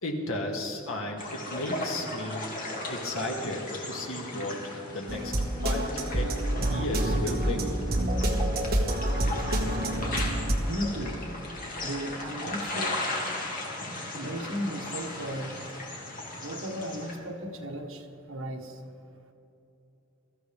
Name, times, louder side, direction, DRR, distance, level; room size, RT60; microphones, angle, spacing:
voice 1, 0.0-2.5 2.9-6.4 6.7-7.8, left 1 dB, 85° left, 1 dB, 2.1 m, -34 dB
sound 1, 1.2-17.2, left 2 dB, 45° left, 2.4 m, -37 dB
sound 2, 5.1-10.5, right 1 dB, 45° right, 1.6 m, -27 dB
voice 2, 10.7-11.2 11.8-13.1 14.1-15.6 16.4-18.8, equal, 80° right, 3 dB, 1.4 m, -35 dB
22.0 x 14.0 x 3.5 m, 2.9 s
head